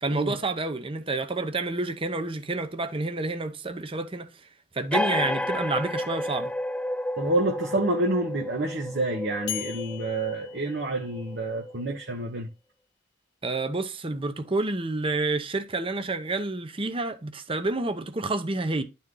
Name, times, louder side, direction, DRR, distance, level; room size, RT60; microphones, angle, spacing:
voice 1, 0.0-4.3 4.7-6.5 13.4-18.8, right 2 dB, 25° right, 0.8 m, -29 dB
sound 1, 4.9-12.1, left 1 dB, 5° left, 0.3 m, -32 dB
voice 2, 7.2-12.5, right 2 dB, 55° right, 1.1 m, -28 dB
sound 2, 9.5-11.5, left 14 dB, 55° left, 1.1 m, -39 dB
11.0 x 4.3 x 3.8 m
head